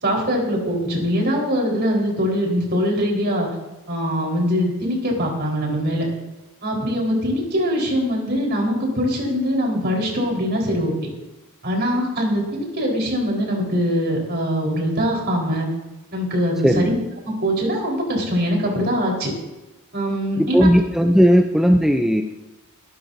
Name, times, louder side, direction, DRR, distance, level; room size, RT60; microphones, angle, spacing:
voice 1, 0.0-3.5 3.9-6.1 6.6-11.1 11.6-15.7 16.1-16.9 17.2-19.3 19.9-20.7, equal, 45° right, -1 dB, 4.5 m, -22 dB
voice 2, 20.4-22.2, equal, ahead, 3 dB, 0.5 m, -16 dB
23.0 x 13.0 x 2.8 m, 1.0 s
head